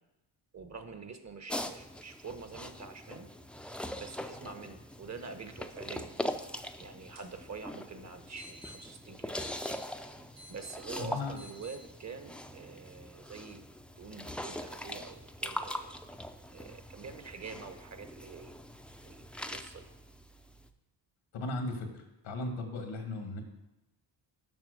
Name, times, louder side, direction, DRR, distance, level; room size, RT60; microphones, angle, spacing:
voice 1, 0.5-3.3 4.0-6.1 6.8-9.3 10.5-13.6 14.0-16.0 16.5-18.6 19.0-19.9, right 4 dB, 35° right, 8 dB, 1.0 m, -46 dB
sound 1, 1.5-20.7, left 1 dB, ahead, 0.5 m, -42 dB
sound 2, 7.0-11.8, equal, 65° right, 2.9 m, -55 dB
voice 2, 11.0-11.4 21.3-23.4, left 2 dB, 80° left, 5 dB, 1.7 m, -37 dB
7.4 x 5.7 x 6.5 m, 0.96 s
cardioid pair, 75°, 45 cm